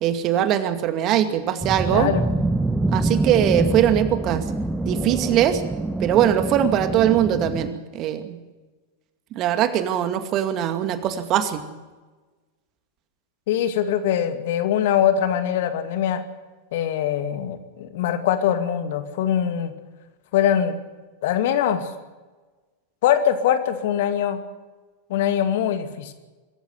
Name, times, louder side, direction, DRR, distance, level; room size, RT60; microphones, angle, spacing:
voice 1, 0.0-2.1 2.9-4.4 4.9-5.6 6.0-8.4 9.3-11.6, right 11 dB, 35° right, 9 dB, 2.3 m, -21 dB
sound 1, 1.6-7.7, right 2 dB, 5° right, 0.9 m, -25 dB
voice 2, 1.9-2.2 13.5-16.2 16.7-19.7 20.3-20.8 21.2-21.9 23.0-24.4 25.1-26.1, left 9 dB, 55° left, 9 dB, 2.3 m, -22 dB
24.5 x 14.5 x 8.1 m, 1.2 s
figure-of-eight pair, 90°, 0 cm